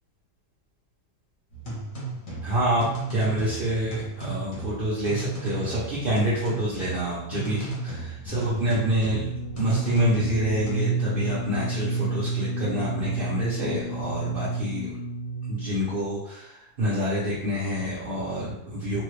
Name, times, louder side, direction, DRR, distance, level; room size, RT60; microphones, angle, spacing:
sound 1, 1.5-10.8, right 3 dB, 35° left, 0.9 m, -35 dB
voice 1, 2.4-14.9 15.5-19.0, equal, 45° right, -8 dB, 0.7 m, -27 dB
sound 2, 8.3-15.9, right 3 dB, 70° left, 0.8 m, -30 dB
3.1 x 2.3 x 3.1 m, 0.78 s
omnidirectional pair, 1.8 m